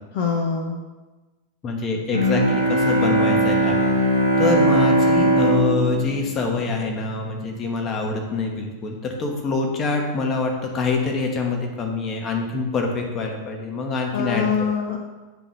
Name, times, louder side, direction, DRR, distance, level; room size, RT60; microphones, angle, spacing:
voice 1, 0.2-0.8 14.1-15.0, left 6 dB, 50° left, 2 dB, 0.6 m, -24 dB
voice 2, 1.6-3.8 4.4-14.5 14.8-14.9, left 4 dB, 30° left, 2 dB, 1.1 m, -25 dB
Bowed string instrument, 2.1-7.4, right 1 dB, 85° left, 1.1 m, -20 dB
7.8 x 3.9 x 3.8 m, 1.2 s
figure-of-eight pair, 90°, 0 cm